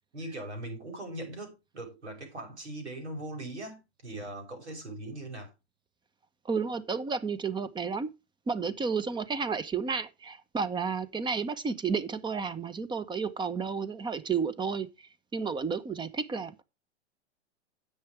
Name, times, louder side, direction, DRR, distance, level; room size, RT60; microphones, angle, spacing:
voice 1, 0.1-5.5, right 1 dB, 75° right, 5.9 m, -40 dB
voice 2, 6.4-8.1 8.5-16.6, right 5 dB, 15° right, 1.0 m, -32 dB
10.0 x 8.0 x 4.6 m
figure-of-eight pair, 100°, 34 cm